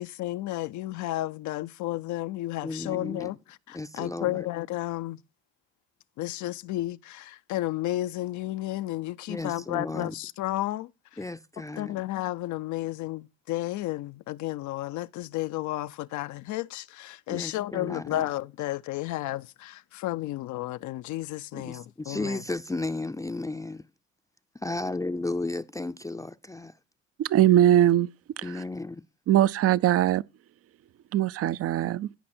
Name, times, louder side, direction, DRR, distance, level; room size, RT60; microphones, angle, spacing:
voice 1, 0.0-5.2 6.2-11.2 11.8-22.4, left 15 dB, 65° left, 0.5 m, -32 dB
voice 2, 2.6-3.3 3.7-4.4 9.3-10.1 11.2-12.0 17.3-18.2 21.5-23.8 24.6-26.7 28.4-29.0, left 2 dB, 10° left, 0.5 m, -34 dB
voice 3, 27.2-28.1 28.4-28.5 29.3-30.2 31.1-32.1, right 12 dB, 45° right, 0.5 m, -21 dB
16.0 x 5.5 x 4.3 m
supercardioid pair, 80°, 33 cm